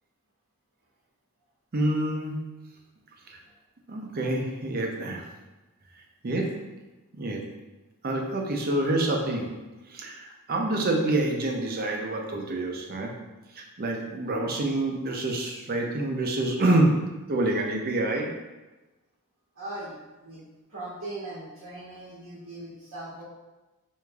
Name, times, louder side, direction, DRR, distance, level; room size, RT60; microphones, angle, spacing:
voice 1, 1.7-2.5 3.3-3.4 3.9-5.3 6.2-6.6 7.2-7.5 8.0-9.6 9.9-13.1 13.5-18.3, right 2 dB, 40° right, 1 dB, 0.5 m, -27 dB
voice 2, 19.5-19.9 20.2-20.4 20.7-23.2, right 2 dB, 90° right, -9 dB, 1.1 m, -39 dB
4.7 x 2.6 x 2.3 m, 1.1 s
head